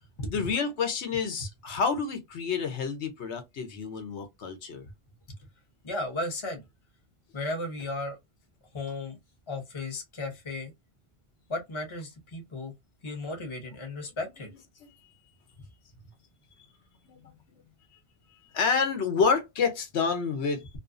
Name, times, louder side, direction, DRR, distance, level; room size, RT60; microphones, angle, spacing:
voice 1, 0.3-4.9 14.0-14.1 17.0-17.3 18.5-20.7, left 5 dB, 85° left, 1.0 m, -28 dB
voice 2, 5.8-6.6 7.3-8.2 8.7-9.2 9.5-10.7 11.5-12.7 13.0-14.5, left 2 dB, 30° left, 0.7 m, -35 dB
2.5 x 2.3 x 2.4 m
omnidirectional pair, 1.1 m